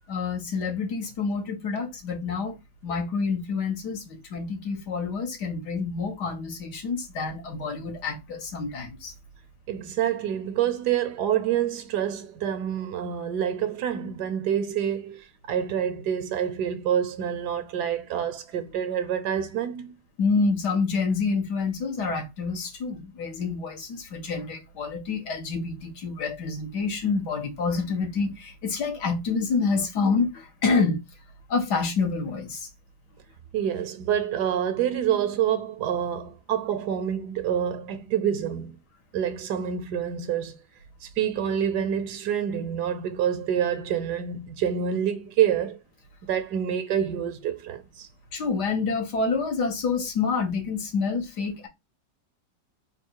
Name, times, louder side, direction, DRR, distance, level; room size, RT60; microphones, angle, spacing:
voice 1, 0.1-2.6 2.8-9.1 20.2-31.0 31.5-32.7 48.3-51.7, left 4 dB, 70° left, 1.7 m, -27 dB
voice 2, 9.7-19.9 33.5-38.8 39.1-40.6 41.0-45.8 46.2-48.1, right 9 dB, 75° right, 1.2 m, -27 dB
3.9 x 2.6 x 4.5 m
omnidirectional pair, 1.9 m